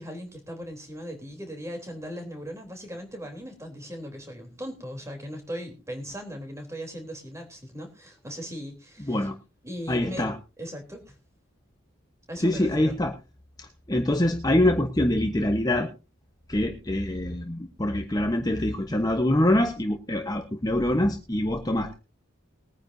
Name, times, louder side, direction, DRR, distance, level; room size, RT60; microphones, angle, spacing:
voice 1, 0.0-9.3 9.6-10.3 10.6-11.2 12.3-12.9, equal, 15° right, 3 dB, 3.5 m, -38 dB
voice 2, 9.9-10.3 12.4-13.1 13.6-15.9 16.5-21.9, left 1 dB, 20° left, 4 dB, 1.1 m, -24 dB
21.5 x 9.7 x 2.7 m, 0.31 s
head